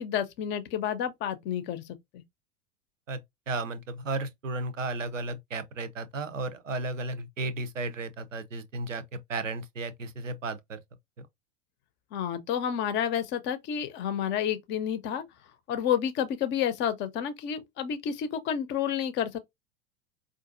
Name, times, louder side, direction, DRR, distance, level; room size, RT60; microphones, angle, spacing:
voice 1, 0.0-1.8 2.1-2.2 12.1-15.2 15.7-19.4, left 9 dB, 30° left, 0.6 m, -30 dB
voice 2, 3.1-10.8 11.2-11.3, right 2 dB, 80° right, 0.7 m, -34 dB
4.7 x 2.5 x 2.5 m
figure-of-eight pair, 85°, 37 cm